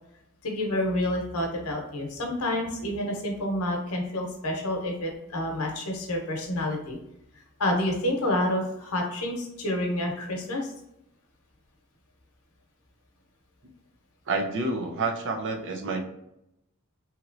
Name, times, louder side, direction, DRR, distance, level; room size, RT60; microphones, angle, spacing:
voice 1, 0.4-7.0 7.6-10.7, left 1 dB, 85° left, 1 dB, 0.8 m, -28 dB
voice 2, 14.3-16.0, right 3 dB, 60° right, 3 dB, 0.5 m, -28 dB
3.0 x 2.9 x 2.5 m, 0.82 s
head